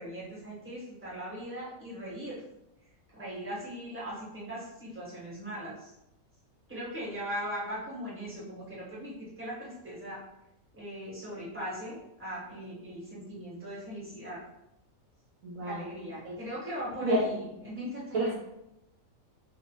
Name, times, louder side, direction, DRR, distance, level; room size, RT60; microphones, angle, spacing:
voice 1, 0.0-2.4 3.1-5.9 6.7-10.2 10.7-14.4 15.6-18.3, equal, 10° right, -8 dB, 1.3 m, -39 dB
voice 2, 15.4-15.8 16.2-16.4 17.0-17.2 18.1-18.3, right 1 dB, 70° right, -4 dB, 1.2 m, -29 dB
2.7 x 2.4 x 3.9 m, 0.85 s
omnidirectional pair, 1.5 m